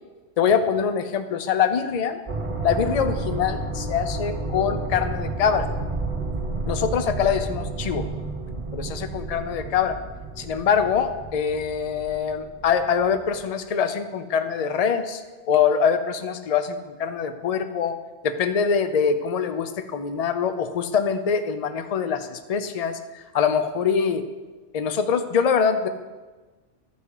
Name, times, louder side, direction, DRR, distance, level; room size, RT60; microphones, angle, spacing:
voice 1, 0.4-2.2 2.6-5.7 6.7-8.1 8.7-10.0 10.4-18.0 18.2-24.2 24.7-25.9, left 7 dB, 45° left, 9 dB, 0.5 m, -24 dB
sound 1, 2.3-13.4, right 2 dB, 30° right, 0.9 m, -31 dB
12.5 x 5.6 x 4.8 m, 1.3 s
omnidirectional pair, 1.2 m